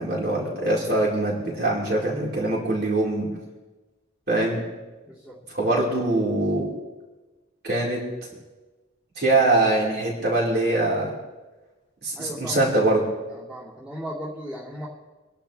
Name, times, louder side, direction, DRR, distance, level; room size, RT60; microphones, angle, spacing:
voice 1, 0.0-3.3 4.3-4.6 5.6-6.7 7.6-8.0 9.2-11.1 12.0-13.0, right 2 dB, 50° right, -4 dB, 4.7 m, -23 dB
voice 2, 12.1-12.7 13.3-14.9, equal, 10° right, -8 dB, 2.6 m, -36 dB
26.5 x 11.5 x 3.4 m, 1.2 s
head